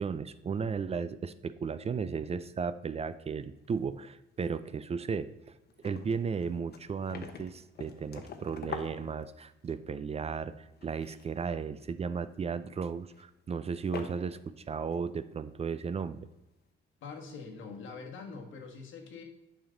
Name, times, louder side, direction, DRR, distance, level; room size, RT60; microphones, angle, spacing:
voice 1, 0.0-5.3 5.8-16.2, right 6 dB, 30° right, 13 dB, 0.4 m, -35 dB
sound 1, 3.7-4.4 4.7-4.8 5.2-5.3 5.5-9.8 10.7-11.4 11.8-12.0 13.1-13.2 13.8-14.5 14.9-15.0, left 6 dB, 55° left, 0.9 m, -45 dB
voice 2, 17.0-19.2, left 4 dB, 80° left, 2 dB, 1.5 m, -44 dB
8.7 x 5.3 x 3.8 m, 0.95 s
cardioid pair, 90°, 20 cm